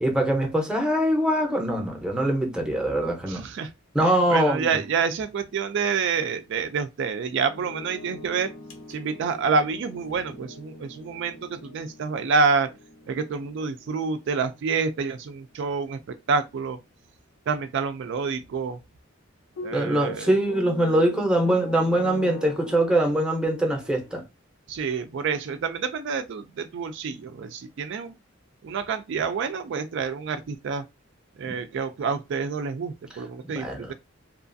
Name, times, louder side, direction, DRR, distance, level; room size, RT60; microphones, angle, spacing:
voice 1, 0.0-3.4 3.9-4.7 19.7-24.2 31.5-31.6 33.4-33.9, right 1 dB, 5° right, 0.6 m, -23 dB
voice 2, 3.3-3.7 4.0-8.5 8.9-12.7 13.1-16.8 17.5-18.8 19.6-20.3 24.7-28.1 28.6-30.8 31.4-33.9, right 5 dB, 65° right, 0.3 m, -28 dB
sound 1, 7.5-15.6 19.6-24.1, left 1 dB, 85° left, 0.7 m, -42 dB
2.9 x 2.4 x 2.5 m
head